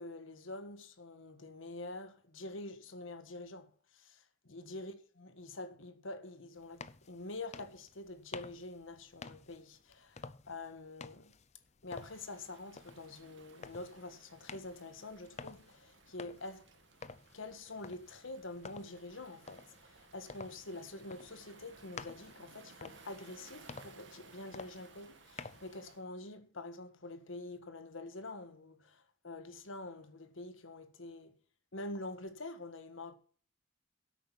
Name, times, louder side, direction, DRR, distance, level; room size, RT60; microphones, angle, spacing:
voice 1, 0.0-10.1 10.5-11.3 11.8-16.7 17.3-31.4 31.7-33.1, left 2 dB, 75° left, 1.5 m, -46 dB
sound 1, 6.6-25.7, left 4 dB, 35° left, 0.6 m, -52 dB
Waves surf, 11.9-26.0, right 4 dB, 60° right, 2.0 m, -60 dB
10.5 x 8.5 x 5.7 m
head